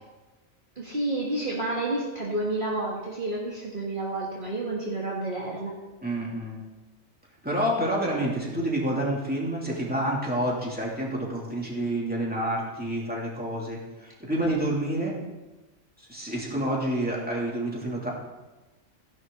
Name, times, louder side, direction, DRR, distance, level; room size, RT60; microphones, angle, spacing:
voice 1, 0.8-5.7, right 2 dB, 40° right, -4 dB, 2.0 m, -30 dB
voice 2, 6.0-6.6 7.4-15.2 16.1-18.1, right 1 dB, 5° right, -4 dB, 2.8 m, -28 dB
15.0 x 11.0 x 3.9 m, 1.1 s
omnidirectional pair, 1.3 m